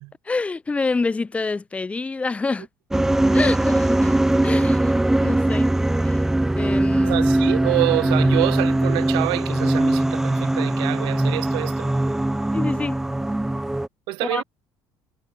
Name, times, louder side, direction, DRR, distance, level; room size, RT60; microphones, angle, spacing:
voice 1, 0.3-2.7 3.3-4.1 4.4-4.9 5.2-5.7 6.0-6.3 6.6-7.2 12.5-13.0 14.2-14.4, left 3 dB, 15° left, 1.4 m, -26 dB
sound 1, 2.9-13.9, right 1 dB, 5° right, 0.5 m, -21 dB
voice 2, 7.0-11.9 14.1-14.4, right 23 dB, 85° right, 0.8 m, -26 dB
cardioid pair, 145°, 8 cm